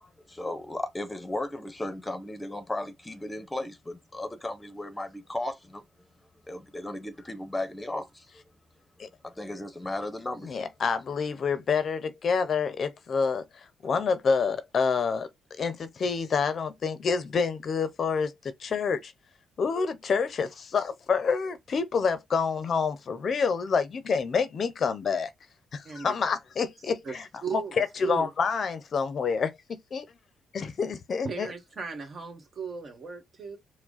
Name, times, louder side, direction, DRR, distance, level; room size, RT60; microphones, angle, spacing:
voice 1, 0.0-5.8 6.5-8.3 9.2-10.6, left 1 dB, 15° left, 0.8 m, -35 dB
voice 2, 10.4-15.3 15.6-19.1 19.6-25.3 25.7-27.2 27.5-30.0 30.5-31.5, left 5 dB, 50° left, 0.6 m, -28 dB
voice 3, 27.4-28.3 31.2-33.6, right 5 dB, 45° right, 1.5 m, -36 dB
4.7 x 2.1 x 4.0 m
cardioid pair, 90°, 0 cm